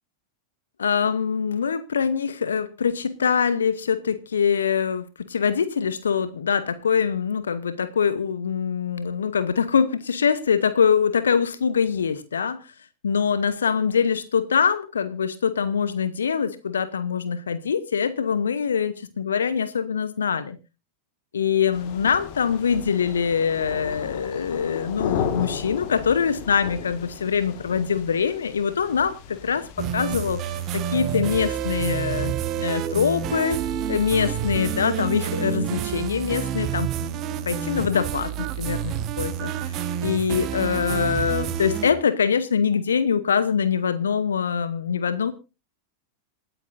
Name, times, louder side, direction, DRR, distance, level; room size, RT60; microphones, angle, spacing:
voice 1, 0.8-12.7 13.0-20.6 21.3-29.7 29.9-30.4 30.7-33.6 33.9-37.2 37.5-45.3, left 6 dB, 70° left, 13 dB, 0.9 m, -24 dB
sound 1, 21.7-31.7, left 8 dB, 45° left, 1.7 m, -35 dB
sound 2, 29.8-41.9, right 9 dB, 35° right, 1.3 m, -28 dB
27.0 x 9.0 x 2.6 m, 0.28 s
figure-of-eight pair, 90°, 0 cm